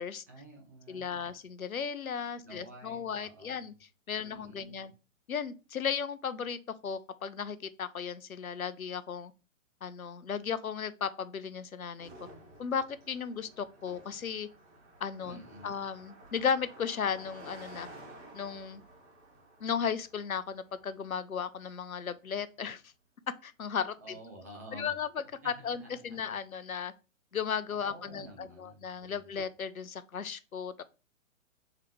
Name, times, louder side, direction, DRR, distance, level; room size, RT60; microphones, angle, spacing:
voice 1, 0.3-1.3 2.4-3.7 4.2-4.9 15.3-15.8 24.0-24.9 25.4-26.3 27.9-29.3, right 1 dB, 15° right, 0.4 m, -50 dB
voice 2, 0.9-4.9 5.3-9.3 9.8-12.1 12.6-14.5 15.0-17.9 18.3-18.8 19.6-22.9 23.4-24.2 24.7-26.9 27.3-30.8, left 7 dB, 90° left, 0.6 m, -35 dB
Car passing by, 12.0-21.6, right 1 dB, 55° right, 1.9 m, -53 dB
3.7 x 3.4 x 3.0 m
figure-of-eight pair, 125°, 41 cm